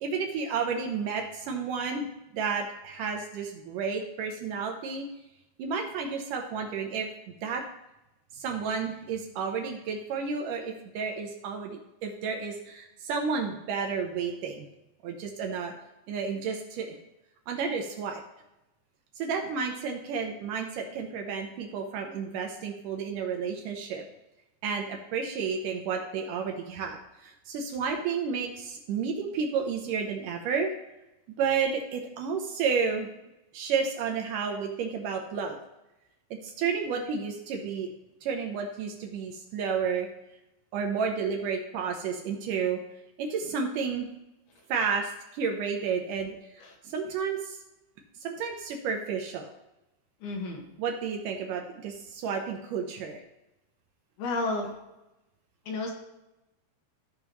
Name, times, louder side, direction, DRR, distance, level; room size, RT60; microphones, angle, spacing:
voice 1, 0.0-2.1 2.3-5.1 5.6-7.1 7.4-7.6 8.3-14.7 15.0-15.7 16.1-17.0 17.5-18.2 19.2-24.0 24.6-30.7 31.4-33.1 33.5-35.6 36.3-37.9 38.2-40.1 40.7-42.8 43.2-44.1 44.7-47.6 48.2-49.5 50.8-53.2, right 5 dB, 75° right, 3 dB, 2.1 m, -31 dB
voice 2, 50.2-50.6 54.2-54.7 55.7-55.9, left 2 dB, 85° left, 1 dB, 3.4 m, -31 dB
14.5 x 5.3 x 3.0 m, 0.93 s
omnidirectional pair, 4.3 m